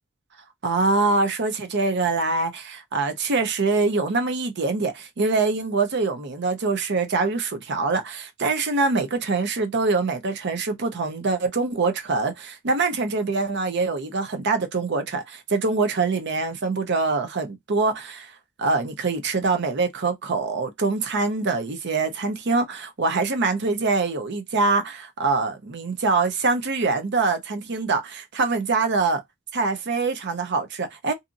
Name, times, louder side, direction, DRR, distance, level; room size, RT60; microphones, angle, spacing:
voice 1, 0.6-29.2 29.5-31.1, right 3 dB, 55° right, 0.7 m, -24 dB
2.7 x 2.5 x 2.5 m
head